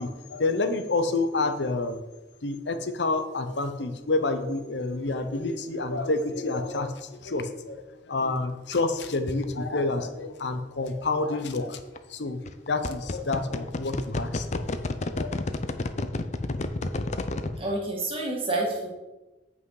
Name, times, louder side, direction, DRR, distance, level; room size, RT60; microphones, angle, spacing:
voice 1, 0.0-2.0 2.4-7.8 8.1-11.8 12.1-12.4 12.7-14.6 15.1-15.3 15.6-15.7, left 3 dB, 70° left, 8 dB, 0.8 m, -28 dB
sound 1, 9.3-9.4 11.8-12.0 12.5-17.6, left 2 dB, 40° left, 0.5 m, -30 dB
voice 2, 17.6-18.9, right 2 dB, 30° right, -2 dB, 2.0 m, -28 dB
8.2 x 5.5 x 4.8 m, 1.1 s
head